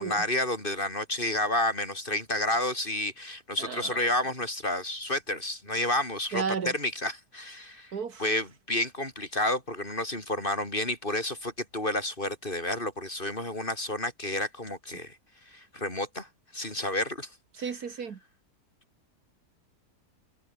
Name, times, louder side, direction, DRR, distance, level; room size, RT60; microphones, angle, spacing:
voice 1, 0.0-15.2 15.5-17.3, left 1 dB, 30° left, 5.2 m, -30 dB
voice 2, 3.6-4.0 6.3-6.7 7.9-8.3 17.5-18.2, right 6 dB, 65° right, 2.0 m, -33 dB
omnidirectional pair, 1.8 m